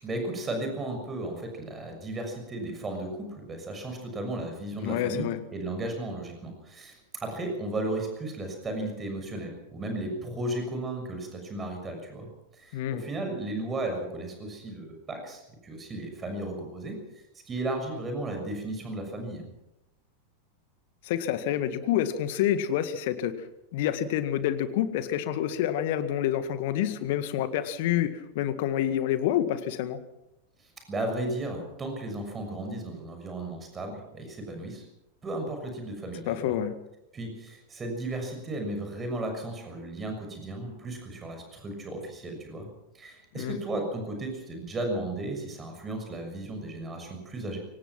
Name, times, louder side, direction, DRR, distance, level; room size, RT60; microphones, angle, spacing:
voice 1, 0.0-12.3 12.5-17.0 17.5-19.5 30.9-34.9 35.2-36.6 37.1-42.7 42.9-47.6, right 1 dB, 20° right, 4 dB, 6.5 m, -35 dB
voice 2, 4.8-5.4 12.7-13.0 21.0-23.3 23.7-30.0 36.3-36.8 43.4-43.6, left 11 dB, 50° left, 11 dB, 1.8 m, -28 dB
24.5 x 18.0 x 6.0 m, 0.88 s
figure-of-eight pair, 90°, 0 cm